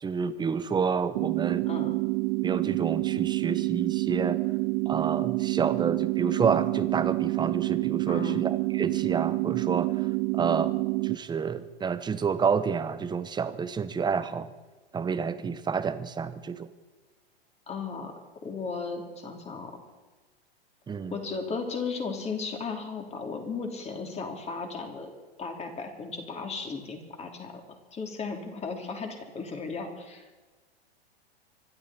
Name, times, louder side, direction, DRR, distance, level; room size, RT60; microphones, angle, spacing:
voice 1, 0.0-1.7 2.4-4.4 4.8-10.1 10.3-10.7 11.0-14.5 14.9-16.7 20.9-21.2, right 6 dB, 15° right, 12 dB, 1.0 m, -29 dB
sound 1, 1.2-11.2, right 26 dB, 50° right, 0.5 m, -28 dB
voice 2, 1.6-2.0 8.1-8.4 17.7-19.7 21.1-30.4, left 4 dB, 20° left, 3 dB, 3.3 m, -36 dB
25.5 x 12.0 x 4.4 m, 1.3 s
hypercardioid pair, 115°, 32 cm